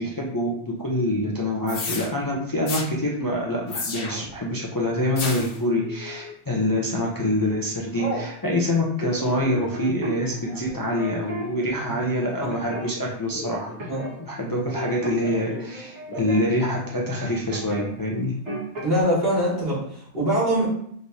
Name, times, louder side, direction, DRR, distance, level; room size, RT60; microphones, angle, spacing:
voice 1, 0.0-13.7 14.2-18.3, left 1 dB, 25° left, -4 dB, 0.5 m, -26 dB
sound 1, 1.7-2.1 2.7-2.9 3.7-4.3 5.2-5.6, left 4 dB, 60° left, 0.9 m, -31 dB
Telephone, 5.8-6.3 6.9-7.1 7.4-8.3 8.9-14.4 14.6-15.7 16.0-16.5 16.8-16.9 17.1-17.7, left 1 dB, 45° left, 1.4 m, -37 dB
sound 2, 9.7-11.4 11.9-13.1 13.8-14.2 14.4-17.9 18.2-19.0, equal, 90° right, 1.8 m, -36 dB
voice 2, 18.8-20.7, right 1 dB, 55° right, -8 dB, 2.2 m, -23 dB
5.1 x 3.2 x 2.7 m, 0.66 s
omnidirectional pair, 1.1 m